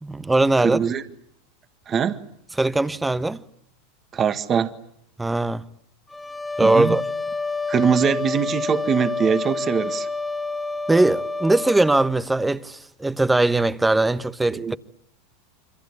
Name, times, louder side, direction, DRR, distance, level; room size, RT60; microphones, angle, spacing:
voice 1, 0.0-0.8 2.6-3.4 5.2-5.6 6.6-7.0 10.9-14.8, right 2 dB, 10° right, 1.1 m, -20 dB
voice 2, 0.6-1.0 1.9-2.2 4.1-4.7 6.6-7.0 7.7-10.1 14.5-14.8, right 7 dB, 30° right, 1.7 m, -22 dB
sound 1, 6.1-12.1, left 3 dB, 10° left, 1.7 m, -28 dB
27.5 x 25.5 x 8.3 m
hypercardioid pair, 90°, 0 cm